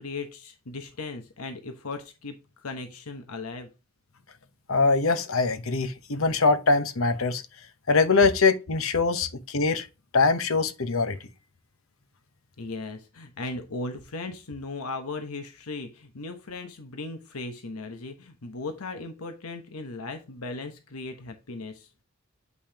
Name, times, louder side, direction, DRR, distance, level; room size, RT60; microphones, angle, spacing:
voice 1, 0.0-3.7 12.6-21.9, left 3 dB, 85° left, 1.1 m, -37 dB
voice 2, 4.7-7.4 7.9-9.9 10.1-11.2, left 4 dB, 65° left, 0.9 m, -23 dB
8.5 x 5.5 x 2.8 m
head